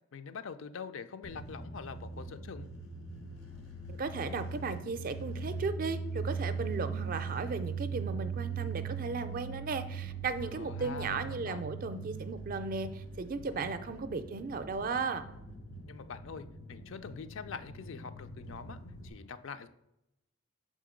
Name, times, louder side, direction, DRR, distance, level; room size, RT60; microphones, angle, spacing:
voice 1, 0.1-2.7 10.5-11.6 13.5-13.8 15.9-19.7, left 5 dB, 65° left, 11 dB, 0.4 m, -45 dB
sound 1, 1.2-19.1, right 5 dB, 85° left, 1.2 m, -40 dB
voice 2, 3.9-15.2, right 4 dB, 45° right, 11 dB, 0.4 m, -36 dB
5.8 x 3.8 x 5.0 m, 0.86 s
head